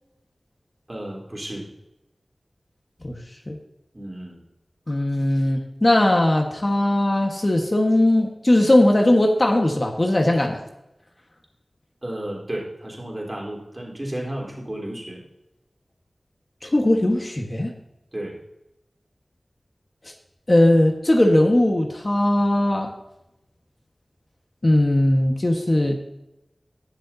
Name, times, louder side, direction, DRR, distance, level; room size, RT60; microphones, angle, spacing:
voice 1, 0.9-1.7 3.9-4.4 12.0-15.2 18.1-18.4, right 1 dB, 30° right, -1 dB, 3.6 m, -33 dB
voice 2, 4.9-10.6 16.6-17.7 20.5-22.9 24.6-25.9, left 1 dB, 40° left, 2 dB, 1.4 m, -19 dB
19.0 x 6.6 x 2.8 m, 0.89 s
wide cardioid pair, 50°, 0 cm